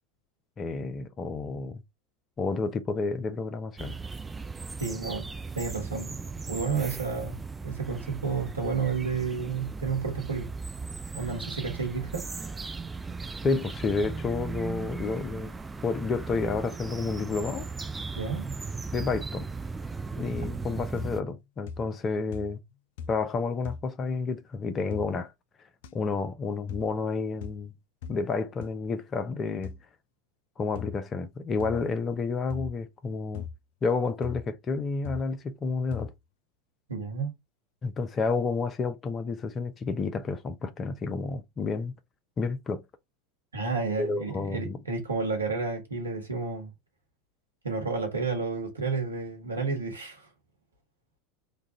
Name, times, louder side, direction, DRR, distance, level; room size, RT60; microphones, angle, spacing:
voice 1, 0.6-1.8 2.4-4.0 13.4-15.5 15.8-17.6 18.9-19.5 20.2-22.6 23.1-25.3 25.9-27.7 28.1-29.7 30.6-33.5 33.8-36.1 37.8-41.9 42.4-42.8 44.0-44.8, left 4 dB, 30° left, 0.7 m, -30 dB
sound 1, 3.8-21.2, right 4 dB, 15° right, 0.4 m, -37 dB
voice 2, 4.8-5.3 5.5-6.1 6.5-10.5 11.1-12.2 18.1-18.5 36.9-37.3 43.5-46.7 47.6-50.3, right 4 dB, 90° right, 1.4 m, -31 dB
sound 2, 20.3-20.7 21.0-21.4 21.7-22.1 22.3-22.7 23.0-23.3 23.6-23.9 24.9-25.1 25.8-25.9 26.7-26.9 27.4-27.6 28.0-28.2 28.6-28.7 29.6-29.8 30.8-31.0 31.6-31.9 32.5-32.8 33.3-33.6 34.2-34.5 35.0-35.3 35.9-36.2, left 8 dB, 65° left, 0.4 m, -39 dB
3.3 x 2.4 x 4.1 m
hypercardioid pair, 80°, 0 cm